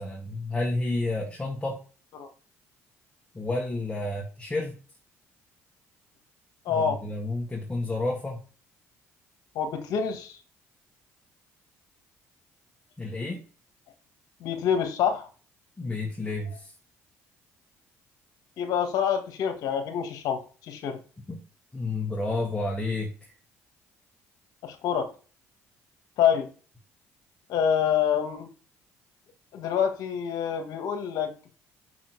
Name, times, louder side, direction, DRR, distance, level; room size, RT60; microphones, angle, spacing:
voice 1, 0.0-1.8 3.3-4.8 6.7-8.4 13.0-13.4 15.8-16.7 21.3-21.4 21.7-23.3, left 2 dB, 15° left, -2 dB, 2.0 m, -30 dB
voice 2, 6.7-7.0 9.6-10.4 14.4-15.3 18.6-21.0 24.6-25.1 26.2-26.5 27.5-28.5 29.5-31.5, left 8 dB, 70° left, 7 dB, 1.6 m, -26 dB
6.1 x 5.9 x 4.7 m, 0.38 s
hypercardioid pair, 60°, 7 cm